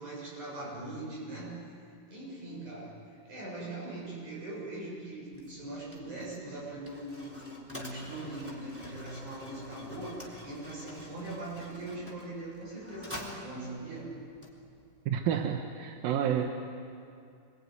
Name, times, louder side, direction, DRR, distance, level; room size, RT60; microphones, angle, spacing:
voice 1, 0.0-1.6 2.1-2.9 3.2-14.2, right 2 dB, 45° right, -3 dB, 8.5 m, -41 dB
Mechanisms, 5.3-15.0, equal, 5° right, 3.1 m, -48 dB
voice 2, 15.1-16.5, right 9 dB, 70° right, 3 dB, 2.5 m, -29 dB
26.5 x 22.5 x 9.6 m, 2.5 s
omnidirectional pair, 4.9 m